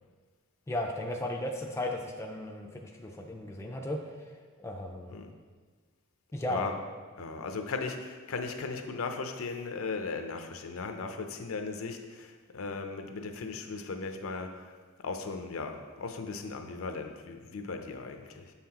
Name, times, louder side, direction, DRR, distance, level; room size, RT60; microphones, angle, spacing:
voice 1, 0.7-4.2 4.6-5.2 6.3-6.7, left 1 dB, 15° left, 1 dB, 0.4 m, -35 dB
voice 2, 6.4-6.7 7.2-14.8 15.0-18.5, left 4 dB, 70° left, 6 dB, 0.5 m, -37 dB
6.9 x 5.7 x 2.9 m, 1.5 s
head